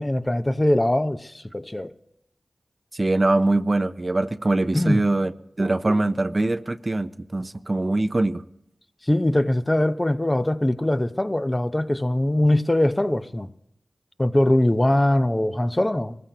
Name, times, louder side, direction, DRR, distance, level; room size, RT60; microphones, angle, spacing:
voice 1, 0.0-1.9 4.7-5.0 9.1-13.5 14.2-16.2, left 1 dB, 25° left, 0.8 m, -22 dB
voice 2, 2.9-5.3 5.6-8.4, right 2 dB, 45° right, 0.6 m, -22 dB
22.5 x 14.5 x 2.9 m
cardioid pair, 40°, 0 cm